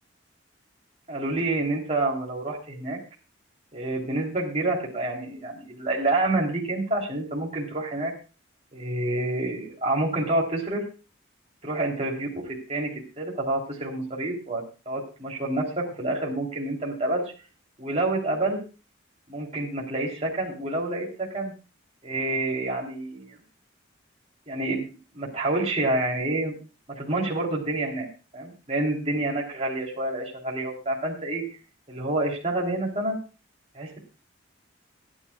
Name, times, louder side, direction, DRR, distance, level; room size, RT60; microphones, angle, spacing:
voice 1, 1.1-3.0 3.7-8.1 8.7-10.8 11.6-12.3 12.7-17.2 17.8-18.6 19.3-21.5 22.0-23.4 24.5-24.8 25.1-26.5 26.9-28.1 28.3-31.4 31.9-33.2 33.7-34.0, right 2 dB, 30° right, -2 dB, 3.3 m, -28 dB
26.0 x 9.9 x 2.4 m, 0.34 s
head